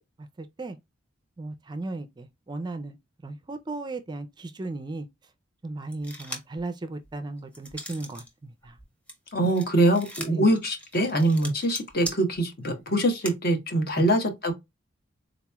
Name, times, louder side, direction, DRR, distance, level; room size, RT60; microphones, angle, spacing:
voice 1, 0.2-0.8 1.4-3.0 3.2-5.1 5.6-8.7 10.3-10.5 14.0-14.1, right 2 dB, 20° right, 0.4 m, -36 dB
sound 1, 5.9-6.6 7.0-8.3 8.6-13.3, equal, 5° left, 0.8 m, -40 dB
voice 2, 9.3-14.5, right 1 dB, 55° left, 1.0 m, -24 dB
3.9 x 3.0 x 2.2 m
head